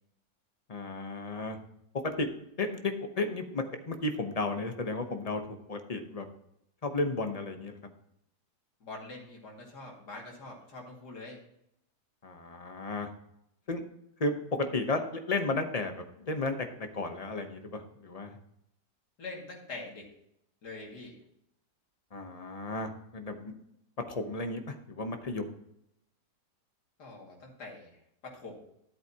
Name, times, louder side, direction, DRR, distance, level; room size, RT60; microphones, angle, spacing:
voice 1, 0.7-1.6 2.0-2.3 2.6-5.4 5.7-6.2 6.8-7.8 12.2-13.1 13.7-13.8 14.2-18.4 22.1-23.5 24.1-25.5, left 2 dB, 30° left, 6 dB, 0.8 m, -33 dB
voice 2, 8.8-11.4 19.2-20.1 20.6-21.1 27.0-28.6, left 2 dB, 75° left, -2 dB, 2.9 m, -44 dB
13.0 x 8.1 x 2.9 m, 0.77 s
omnidirectional pair, 1.8 m